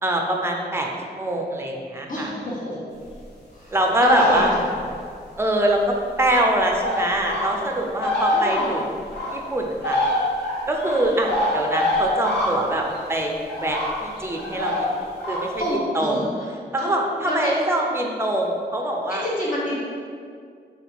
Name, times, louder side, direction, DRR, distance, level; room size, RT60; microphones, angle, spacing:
voice 1, 0.0-2.3 3.7-4.5 5.4-10.0 10.7-14.9 15.3-16.2 16.7-19.3, right 1 dB, 15° right, 0 dB, 0.5 m, -24 dB
voice 2, 2.1-2.8 3.5-3.7 4.0-4.5 8.3-8.7 15.6-16.2 16.8-16.9 17.2-17.5 19.1-19.8, left 1 dB, 50° left, -7 dB, 1.2 m, -28 dB
sound 1, 4.1-4.9 6.2-6.3 6.8-7.6 7.9-9.3 9.8-13.1 13.5-15.7, left 1 dB, 85° left, 0.9 m, -25 dB
3.1 x 2.9 x 4.2 m, 2.2 s
cardioid pair, 65°, 17 cm